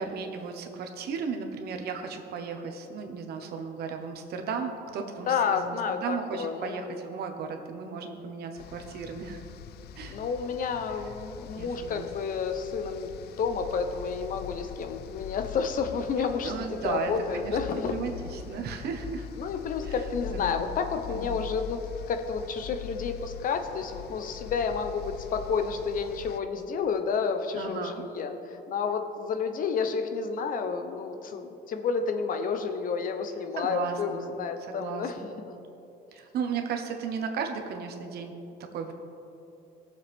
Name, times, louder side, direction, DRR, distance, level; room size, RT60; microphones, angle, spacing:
voice 1, 0.0-5.8 6.0-9.4 9.9-10.2 11.6-12.1 16.4-19.3 19.8-19.9 20.3-20.7 21.1-21.3 27.5-28.0 33.6-34.4 34.7-35.3 36.1-38.3 38.7-38.9, right 5 dB, 70° right, 4 dB, 1.2 m, -35 dB
voice 2, 5.3-6.9 10.1-18.0 19.4-21.8 22.1-35.2 35.5-35.6, left 5 dB, 55° left, 7 dB, 0.9 m, -30 dB
sound 1, 8.6-26.4, left 10 dB, 70° left, 0.5 m, -42 dB
17.5 x 7.2 x 3.6 m, 2.9 s
cardioid pair, 110°, 17 cm